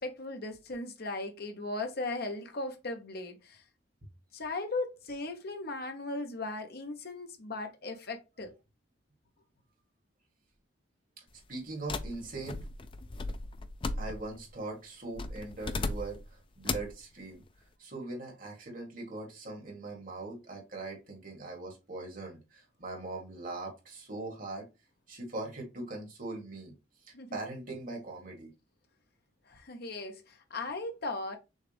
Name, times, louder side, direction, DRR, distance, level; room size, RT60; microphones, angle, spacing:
voice 1, 0.0-3.6 4.3-8.5 27.1-27.4 29.5-31.4, left 2 dB, 55° left, 0.9 m, -37 dB
voice 2, 11.5-12.6 14.0-17.4 17.8-24.7 25.1-26.7 27.0-28.5, right 2 dB, 45° right, 1.9 m, -41 dB
sound 1, 11.9-14.5 15.2-16.3 16.6-17.0, left 3 dB, 25° left, 0.4 m, -36 dB
6.4 x 2.4 x 3.4 m
head